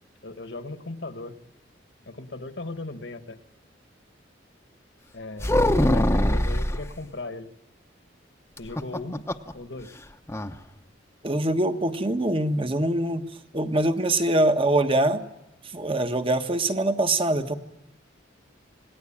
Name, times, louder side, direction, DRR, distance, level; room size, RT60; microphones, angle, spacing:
voice 1, 0.2-1.3 2.1-3.4 5.1-7.5 8.6-9.2 9.5-9.9, left 2 dB, 65° left, 9 dB, 1.6 m, -37 dB
sound 1, 5.4-6.8 8.6-9.5 9.8-9.9 10.3-10.6, left 1 dB, 15° left, 1.0 m, -22 dB
voice 2, 11.2-13.2 13.5-15.2 15.7-17.5, right 1 dB, 30° right, 8 dB, 1.4 m, -23 dB
27.5 x 19.5 x 8.8 m, 0.97 s
head